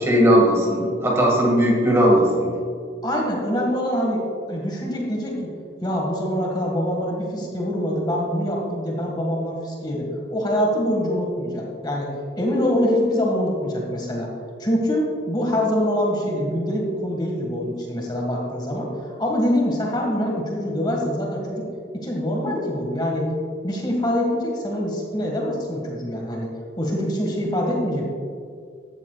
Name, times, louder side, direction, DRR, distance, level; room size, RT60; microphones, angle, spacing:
voice 1, 0.1-2.5, equal, 15° right, -2 dB, 2.1 m, -18 dB
voice 2, 3.0-5.5 5.8-12.1 12.4-14.3 14.6-21.7 21.9-23.3 23.6-26.5 26.8-28.0, equal, 25° left, -1 dB, 1.9 m, -24 dB
15.0 x 12.0 x 2.5 m, 2.2 s
head